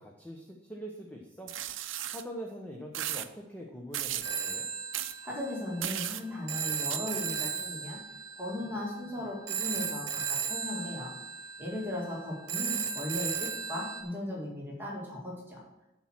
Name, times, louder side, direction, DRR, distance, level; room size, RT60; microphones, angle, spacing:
voice 1, 0.0-1.5 2.1-4.7, equal, 10° left, 0 dB, 0.9 m, -43 dB
sound 1, 1.5-2.2 2.9-3.3 3.9-4.3 4.9-5.1 5.8-6.2 6.9-7.0, right 12 dB, 85° right, 0.5 m, -35 dB
Telephone, 4.2-14.0, right 6 dB, 60° right, 1.1 m, -36 dB
voice 2, 5.2-8.0 8.4-11.1 11.6-15.6, left 1 dB, 10° right, -4 dB, 2.2 m, -37 dB
11.5 x 4.4 x 6.0 m, 0.98 s
head